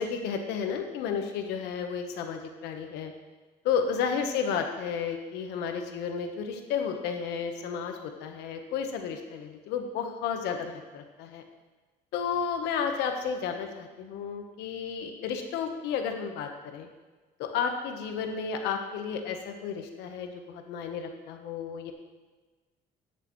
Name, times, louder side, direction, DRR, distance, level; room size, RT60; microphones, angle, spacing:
voice 1, 0.0-3.1 3.6-11.4 12.1-16.9 17.4-21.9, left 6 dB, 90° left, 5 dB, 1.2 m, -32 dB
16.5 x 6.7 x 3.2 m, 1.3 s
cardioid pair, 110°, 17 cm